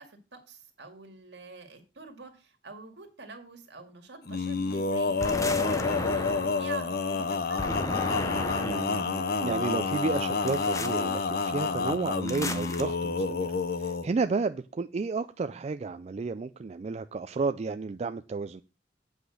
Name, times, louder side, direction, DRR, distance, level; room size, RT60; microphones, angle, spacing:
voice 1, 0.0-5.3 5.7-7.7, right 4 dB, 70° right, 2.0 m, -46 dB
Male singing, 4.3-14.1, left 4 dB, 55° left, 0.7 m, -29 dB
sound 1, 5.2-6.7 7.6-9.0 10.5-11.0 12.3-12.8, left 2 dB, 20° left, 0.7 m, -34 dB
voice 2, 8.6-18.6, right 4 dB, 35° right, 0.3 m, -32 dB
8.4 x 5.0 x 6.4 m
head